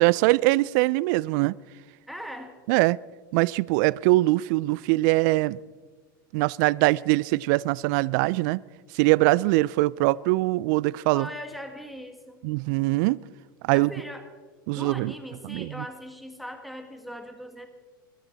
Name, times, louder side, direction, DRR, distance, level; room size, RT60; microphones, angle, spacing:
voice 1, 0.0-1.6 2.7-3.0 3.3-5.6 6.3-8.6 8.9-11.3 12.4-13.2 13.6-13.9 14.7-15.1 15.4-15.8, right 21 dB, 60° right, 0.3 m, -22 dB
voice 2, 2.1-2.5 11.1-12.4 13.7-14.3 14.7-17.7, equal, ahead, 1.8 m, -39 dB
22.5 x 13.5 x 4.0 m
hypercardioid pair, 95°, 11 cm